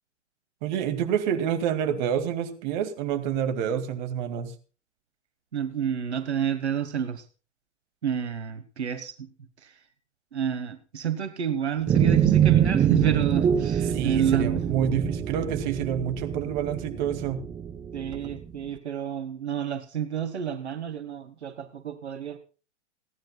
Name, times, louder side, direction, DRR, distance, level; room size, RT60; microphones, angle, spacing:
voice 1, 0.6-4.5 13.9-17.4, right 9 dB, 40° right, 9 dB, 2.3 m, -28 dB
voice 2, 5.5-7.2 8.0-9.3 9.6-9.7 10.3-14.6 17.9-22.4, right 8 dB, 65° right, 10 dB, 1.6 m, -29 dB
sound 1, 11.9-18.4, right 9 dB, 10° right, 0.6 m, -25 dB
29.5 x 10.5 x 2.3 m, 0.36 s
figure-of-eight pair, 105°, 35 cm